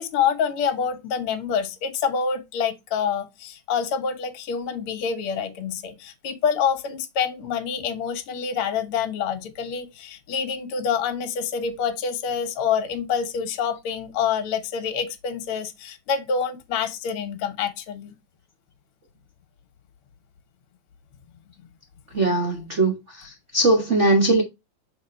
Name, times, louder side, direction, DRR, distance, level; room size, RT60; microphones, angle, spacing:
voice 1, 0.0-18.1, left 7 dB, 60° left, 1.7 m, -27 dB
voice 2, 22.1-24.4, right 2 dB, 80° right, 0.6 m, -20 dB
6.8 x 3.6 x 4.2 m
omnidirectional pair, 3.4 m